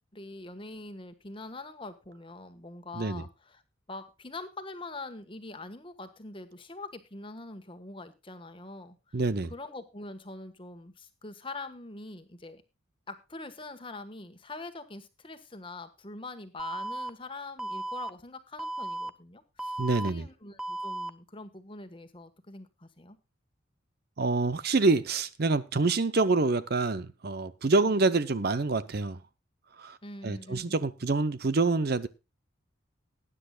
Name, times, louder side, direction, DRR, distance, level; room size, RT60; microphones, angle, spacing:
voice 1, 0.1-3.6 3.9-9.2 9.5-12.6 13.1-23.2 27.8-27.9 30.0-30.8, left 2 dB, 25° left, 1.4 m, -44 dB
voice 2, 9.1-9.5 19.8-20.3 24.2-29.2 29.8-30.0 30.2-32.1, right 3 dB, 50° right, 0.7 m, -26 dB
Alarm, 16.6-17.1 17.6-18.1 18.6-19.1 19.6-20.1 20.6-21.1, right 2 dB, 5° right, 0.5 m, -35 dB
19.5 x 10.0 x 2.3 m
head